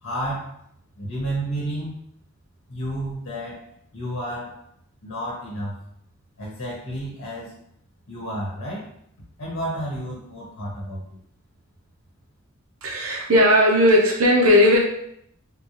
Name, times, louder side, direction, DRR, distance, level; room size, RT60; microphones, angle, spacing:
voice 1, 0.0-0.5 1.0-2.0 2.7-3.6 3.9-4.6 5.0-5.7 6.4-7.5 8.1-8.9 9.4-11.2, right 1 dB, 80° left, -5 dB, 0.9 m, -31 dB
voice 2, 12.8-14.8, left 1 dB, 85° right, -1 dB, 0.8 m, -16 dB
3.5 x 2.4 x 3.0 m, 0.71 s
head